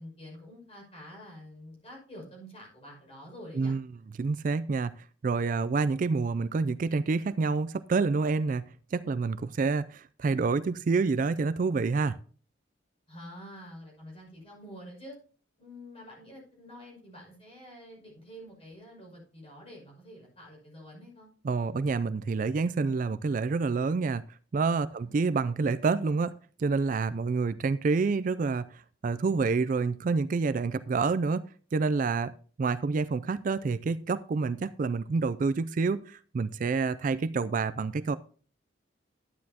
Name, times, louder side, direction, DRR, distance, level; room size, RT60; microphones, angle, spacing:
voice 1, 0.0-3.7 13.1-15.2 15.6-21.3 25.0-25.2, equal, 30° left, 5.8 m, -47 dB
voice 2, 4.2-4.9 5.2-8.6 8.9-12.2 21.4-24.2 24.5-26.3 26.6-32.3 32.6-38.2, right 4 dB, 40° right, 0.3 m, -28 dB
11.5 x 9.7 x 2.8 m
head